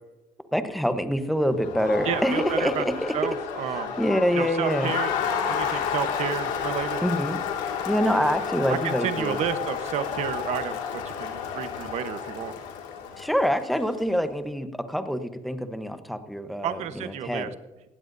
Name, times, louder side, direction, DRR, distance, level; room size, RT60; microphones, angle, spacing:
voice 1, 0.5-3.2 3.7-4.9 7.0-7.4 7.9-9.4 13.2-17.5, equal, ahead, 9 dB, 1.0 m, -26 dB
Crowd, 1.5-14.0, left 7 dB, 90° left, 2.2 m, -31 dB
voice 2, 2.0-2.8 3.1-4.0 4.3-5.1 5.5-7.0 8.7-12.5 16.6-17.5, right 9 dB, 60° right, 10 dB, 1.0 m, -31 dB
18.5 x 15.5 x 2.7 m, 1.1 s
cardioid pair, 130°, 13 cm